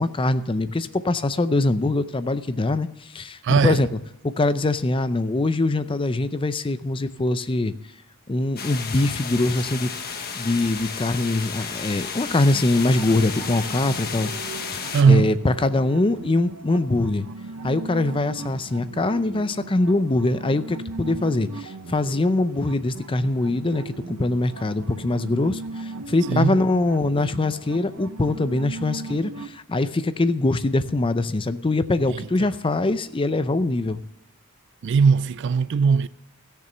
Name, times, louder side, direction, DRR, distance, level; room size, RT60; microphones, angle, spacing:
voice 1, 0.0-3.9 4.2-7.7 8.3-9.9 10.4-17.3 17.6-34.0, left 2 dB, 25° left, 0.5 m, -23 dB
voice 2, 3.4-3.8 14.9-15.4 26.3-26.6 32.1-32.2 34.8-36.1, right 5 dB, 55° right, 0.3 m, -19 dB
sound 1, 8.6-15.0, left 6 dB, 45° left, 1.2 m, -33 dB
sound 2, 12.7-29.5, right 3 dB, 90° right, 0.8 m, -38 dB
15.5 x 6.8 x 6.5 m
head